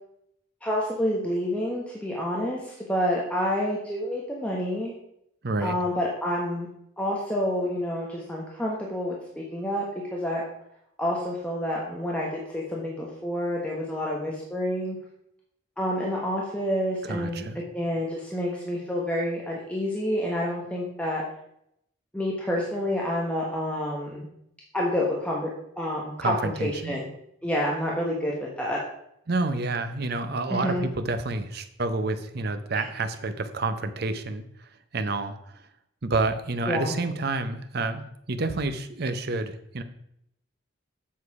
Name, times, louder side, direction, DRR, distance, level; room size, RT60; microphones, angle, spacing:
voice 1, 0.6-4.9 5.6-6.7 7.0-10.4 11.0-15.0 15.8-17.4 17.7-21.2 22.1-24.3 24.7-25.5 25.8-27.1 27.4-28.8 30.5-30.8 32.7-32.9 36.7-36.9, equal, 5° left, -3 dB, 1.2 m, -28 dB
voice 2, 5.4-5.8 17.0-17.6 26.2-27.0 29.3-35.4 36.0-39.8, right 3 dB, 55° right, 9 dB, 0.7 m, -29 dB
7.5 x 6.5 x 4.7 m, 0.76 s
head